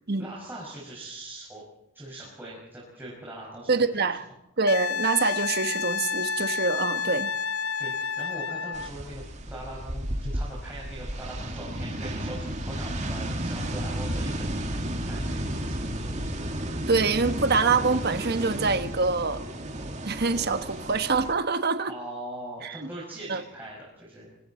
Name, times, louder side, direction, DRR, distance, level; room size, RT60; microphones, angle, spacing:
voice 1, 0.2-1.6 1.9-4.1 7.8-15.7 20.7-20.8 21.9-24.3, right 1 dB, 10° right, -5 dB, 6.2 m, -41 dB
voice 2, 3.7-4.2 4.6-7.3 16.9-19.4 20.0-21.9 22.6-22.9 23.3-23.4, right 4 dB, 50° right, 9 dB, 1.3 m, -25 dB
Wind instrument woodwind instrument, 4.7-8.9 11.6-11.7, left 6 dB, 85° left, 0.8 m, -30 dB
sound 1, 8.7-21.3, right 1 dB, 35° right, 2.3 m, -33 dB
25.0 x 25.0 x 4.4 m, 0.79 s
head